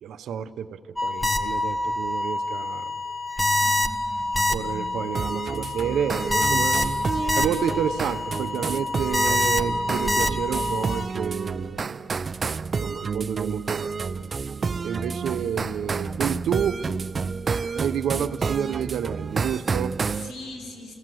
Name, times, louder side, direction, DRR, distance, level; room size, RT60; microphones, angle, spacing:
voice 1, 0.0-2.9 4.5-6.8 7.4-12.1 12.8-13.9 14.8-16.8 17.7-20.0, right 8 dB, 85° right, 10 dB, 0.8 m, -29 dB
sound 1, 1.0-11.0, left 1 dB, 10° left, 1.3 m, -26 dB
voice 2, 3.6-4.9 15.1-15.5 20.1-20.9, left 1 dB, 85° left, -1 dB, 5.0 m, -42 dB
sound 2, 5.2-20.3, right 5 dB, 40° right, 0.5 m, -30 dB
29.0 x 17.5 x 7.8 m, 2.4 s
cardioid pair, 110°, 0 cm